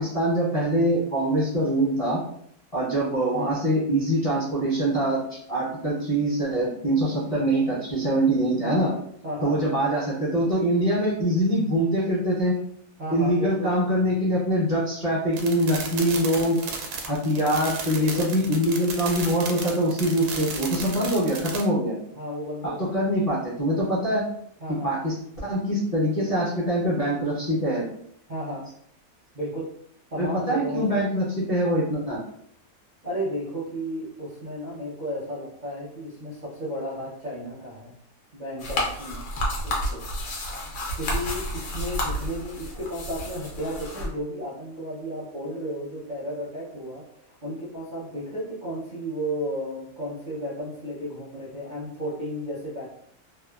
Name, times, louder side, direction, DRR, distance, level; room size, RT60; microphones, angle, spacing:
voice 1, 0.0-2.2 2.7-8.9 9.4-12.5 13.1-16.6 17.0-21.9 22.6-24.2 24.8-25.1 25.4-27.8 30.2-32.2, right 1 dB, 35° left, -9 dB, 0.5 m, -24 dB
voice 2, 3.3-3.7 8.6-9.0 9.2-9.6 13.0-13.7 17.9-18.3 22.1-23.0 24.6-24.9 28.3-28.7 29.3-29.7 30.1-31.0 33.0-37.9 38.3-39.3 39.6-40.0 40.9-52.9, equal, 50° right, -8 dB, 0.5 m, -33 dB
sound 1, 15.3-21.6, right 4 dB, 85° right, 1.1 m, -34 dB
sound 2, 38.6-44.1, left 1 dB, 70° left, 1.0 m, -30 dB
2.9 x 2.1 x 2.3 m, 0.69 s
omnidirectional pair, 1.6 m